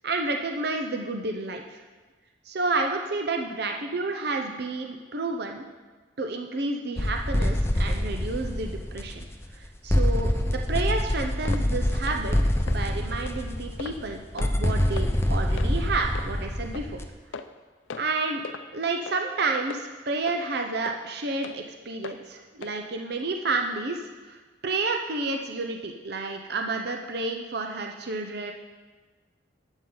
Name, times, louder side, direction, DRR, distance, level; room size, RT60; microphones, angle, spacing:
voice 1, 0.0-1.8 2.4-5.6 6.2-9.3 9.5-12.4 12.7-17.0 18.0-18.4 18.7-28.5, right 3 dB, 55° right, 3 dB, 0.7 m, -30 dB
sound 1, 7.0-9.6 9.9-17.1, left 1 dB, 15° left, 0.6 m, -26 dB
sound 2, 11.5-11.7 12.1-12.2 12.7-12.8 13.3-13.4 13.8-14.0 14.4-14.6 15.0-15.1 15.6-15.7 16.2-16.3 16.7-16.9 17.3-17.6 17.9-18.1 18.4-18.6 19.1-19.2 19.7-19.8 20.3-20.4 20.8-21.0 21.4-21.6 22.0-22.2 22.6-22.8 23.2-23.3, left 5 dB, 90° left, 0.5 m, -39 dB
12.0 x 8.1 x 3.9 m, 1.3 s
head